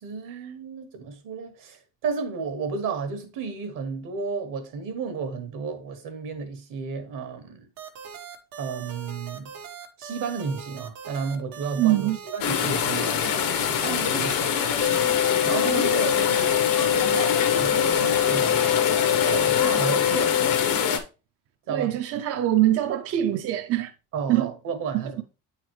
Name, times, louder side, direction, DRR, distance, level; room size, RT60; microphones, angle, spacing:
voice 1, 0.0-7.7 8.6-9.5 10.0-13.1 13.7-14.5 15.5-18.6 19.2-20.3 21.7-21.9 24.1-25.2, right 5 dB, 75° right, 1.4 m, -32 dB
sound 1, 7.8-19.8, right 8 dB, 90° right, 1.2 m, -41 dB
voice 2, 11.7-12.2 21.7-23.9 24.3-24.5 24.9-25.2, right 13 dB, 50° right, 0.4 m, -24 dB
sound 2, 12.4-21.0, left 7 dB, 90° left, 1.0 m, -25 dB
sound 3, 14.8-20.8, left 10 dB, 50° left, 0.5 m, -24 dB
8.9 x 4.0 x 3.0 m
cardioid pair, 150°, 33 cm